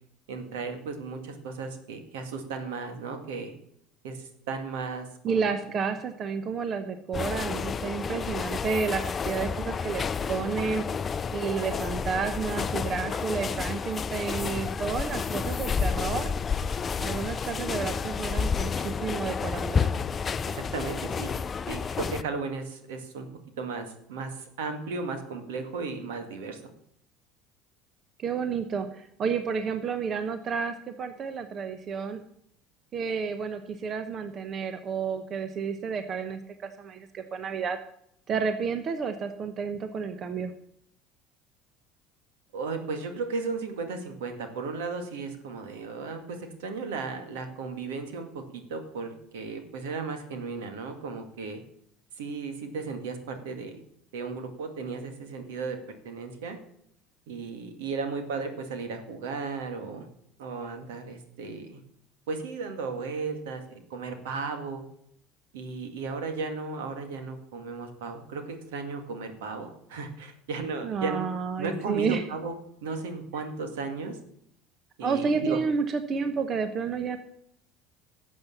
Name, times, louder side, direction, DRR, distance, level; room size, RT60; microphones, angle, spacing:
voice 1, 0.3-3.5 4.0-5.5 20.5-21.3 21.7-23.3 23.6-26.6 42.5-51.6 52.2-53.7 54.1-55.8 56.0-56.6 57.3-60.1 60.4-61.8 62.3-64.8 65.5-71.3 71.6-72.5 72.8-74.2 75.0-75.6, right 4 dB, 80° right, 6 dB, 2.0 m, -35 dB
voice 2, 5.2-10.8 11.3-16.3 17.0-19.9 28.2-32.2 32.9-37.8 38.3-40.5 70.8-72.2 75.0-77.2, right 5 dB, 45° right, 9 dB, 1.1 m, -31 dB
sound 1, 7.1-22.2, left 6 dB, 35° left, 0.5 m, -30 dB
12.5 x 7.6 x 7.2 m, 0.73 s
hypercardioid pair, 75°, 0 cm